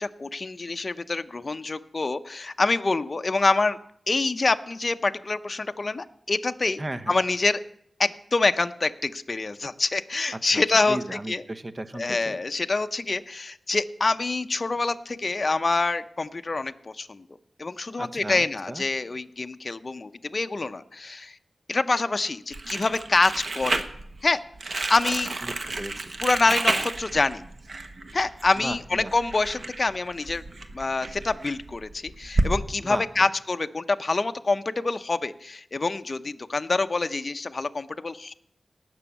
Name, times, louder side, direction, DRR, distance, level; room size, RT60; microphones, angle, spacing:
voice 1, 0.0-3.8 4.1-6.8 7.1-7.6 8.0-11.0 11.3-11.4 12.0-17.2 17.6-21.4 21.7-23.8 24.2-24.4 24.9-25.4 26.2-27.4 28.1-30.4 30.7-38.3, left 3 dB, 45° left, 10 dB, 0.5 m, -26 dB
voice 2, 6.8-7.1 10.3-12.4 18.0-18.8 25.4-26.1 28.6-29.1 32.8-33.3, right 1 dB, 30° right, 10 dB, 0.7 m, -36 dB
Crumpling crinkling, 22.5-32.5, right 2 dB, 55° right, 1.1 m, -31 dB
18.0 x 6.2 x 6.9 m, 0.72 s
wide cardioid pair, 90°, 0 cm